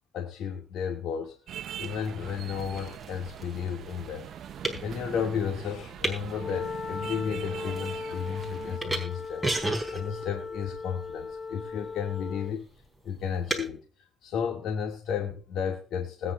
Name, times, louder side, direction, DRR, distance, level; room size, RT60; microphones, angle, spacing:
voice 1, 0.1-1.4 1.8-4.5 4.8-9.4 9.9-12.7 13.0-13.8 14.2-16.3, left 7 dB, 80° left, 2 dB, 2.2 m, -33 dB
sound 1, 1.5-8.8, right 10 dB, 70° right, 0.6 m, -42 dB
sound 2, 1.7-13.7, right 1 dB, ahead, 4.0 m, -38 dB
Wind instrument woodwind instrument, 6.3-12.6, left 4 dB, 40° left, 1.0 m, -38 dB
20.5 x 9.6 x 2.5 m, 0.35 s
cardioid pair, 90°, 0 cm